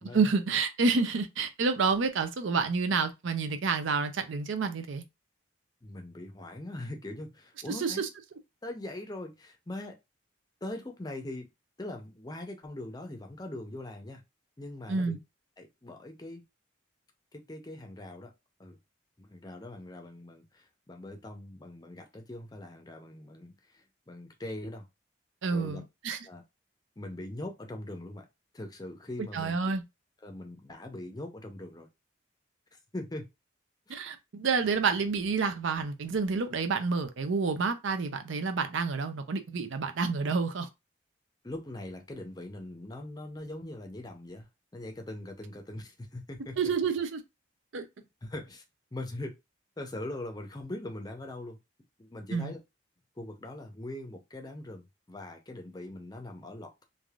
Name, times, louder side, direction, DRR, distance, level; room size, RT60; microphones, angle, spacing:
voice 1, 0.0-5.0 7.7-8.1 14.9-15.2 25.4-26.2 29.3-29.8 33.9-40.7 46.6-47.2 47.7-47.8 52.3-52.5, right 4 dB, 75° right, 0.5 m, -29 dB
voice 2, 5.8-8.0 8.6-9.9 10.6-11.5 11.8-14.2 14.6-15.2 15.6-16.4 17.3-18.3 18.6-18.8 19.2-24.9 25.5-25.8 26.2-26.4 27.0-28.3 28.5-29.6 30.2-31.9 32.9-33.3 33.9-34.0 41.4-44.5 44.7-46.6 48.2-48.6 48.9-49.3 49.8-51.6 52.0-52.6 53.2-56.8, left 1 dB, 20° left, 0.5 m, -41 dB
3.3 x 2.5 x 2.3 m
head